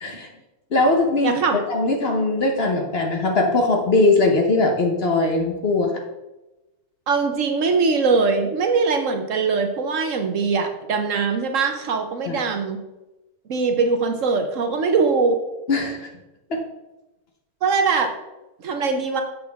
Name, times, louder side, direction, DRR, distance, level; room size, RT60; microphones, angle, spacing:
voice 1, 0.7-5.9 12.3-12.4 15.7-16.1 16.5-16.6, left 2 dB, 45° left, 2 dB, 1.1 m, -20 dB
voice 2, 1.2-1.6 7.1-12.8 13.5-15.4 17.6-18.1 18.6-19.2, right 4 dB, 60° right, 6 dB, 1.1 m, -21 dB
7.8 x 6.5 x 3.5 m, 1.0 s
omnidirectional pair, 1.6 m